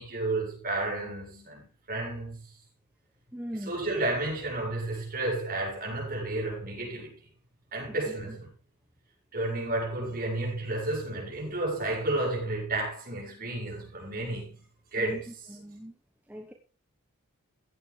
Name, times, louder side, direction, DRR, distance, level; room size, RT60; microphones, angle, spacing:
voice 1, 0.0-2.4 3.5-7.1 7.7-8.5 9.3-14.6 14.9-15.5, right 2 dB, 40° right, 7.8 m, -32 dB
voice 2, 3.3-3.8 15.0-15.2 15.5-15.9 16.3-16.5, equal, 5° right, 1.3 m, -39 dB
15.5 x 9.7 x 3.8 m
head